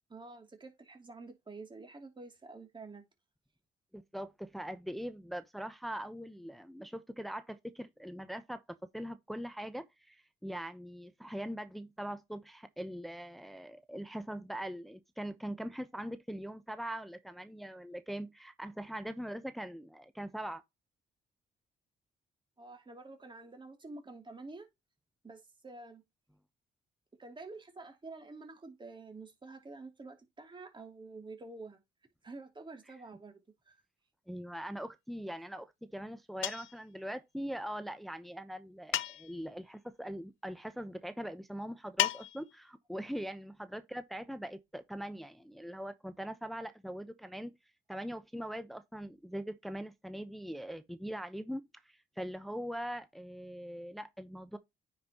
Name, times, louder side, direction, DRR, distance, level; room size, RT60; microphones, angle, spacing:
voice 1, 0.1-3.0 22.6-24.7 25.2-26.0 27.2-31.8 32.2-33.4 33.7-33.8, right 3 dB, 25° right, 2.8 m, -48 dB
voice 2, 3.9-8.6 8.9-20.6 32.9-33.0 34.3-47.5 47.9-54.6, equal, ahead, 0.9 m, -42 dB
sound 1, 36.4-36.8 38.9-39.5 42.0-42.6, left 15 dB, 75° left, 0.6 m, -33 dB
9.4 x 5.5 x 3.0 m
cardioid pair, 90°, 20 cm